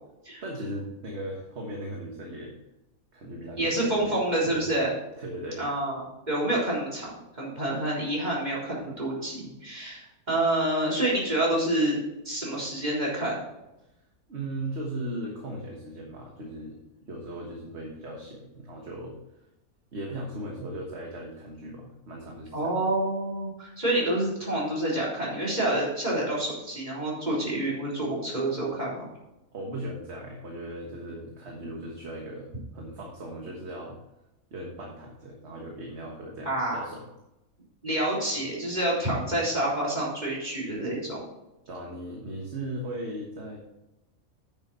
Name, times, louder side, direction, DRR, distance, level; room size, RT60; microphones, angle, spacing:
voice 1, 0.4-2.5 3.1-4.1 4.4-4.7 5.2-5.6 13.8-13.9 14.3-16.8 17.1-19.2 19.9-22.7 29.5-34.0 34.5-37.1 41.7-43.6, right 1 dB, 50° right, 0 dB, 1.6 m, -37 dB
voice 2, 3.6-4.9 5.6-12.0 12.2-13.3 22.5-29.1 36.5-36.9 37.8-41.2, right 1 dB, 30° right, -6 dB, 3.9 m, -28 dB
9.8 x 7.2 x 4.3 m, 0.94 s
omnidirectional pair, 1.5 m